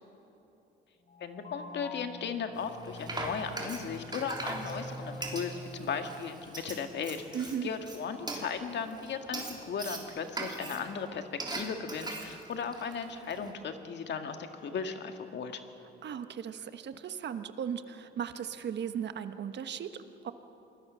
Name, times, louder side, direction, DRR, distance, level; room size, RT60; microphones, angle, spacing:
sound 1, 1.0-6.5, left 1 dB, 45° left, 4.9 m, -45 dB
voice 1, 1.2-7.4 7.6-15.6, left 6 dB, 60° left, 6 dB, 1.9 m, -36 dB
Frying (food), 2.6-13.5, right 2 dB, 20° right, 3.5 m, -41 dB
voice 2, 7.3-7.7 16.0-20.3, right 8 dB, 60° right, 10 dB, 1.2 m, -37 dB
27.5 x 20.5 x 6.4 m, 3.0 s
cardioid pair, 90°, 20 cm